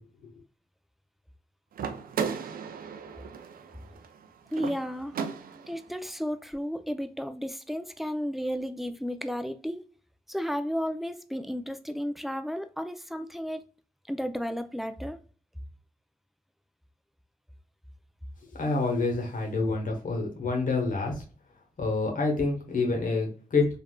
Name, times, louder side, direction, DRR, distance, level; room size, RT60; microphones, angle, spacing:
sound 1, 1.7-5.9, right 6 dB, 80° right, 0.4 m, -36 dB
voice 1, 4.5-5.2 5.7-9.8 10.3-13.7 14.1-15.2, equal, ahead, 0.4 m, -33 dB
voice 2, 18.5-21.2 21.8-23.7, left 3 dB, 65° left, 1.1 m, -27 dB
3.3 x 2.5 x 2.2 m
cardioid pair, 45°, 15 cm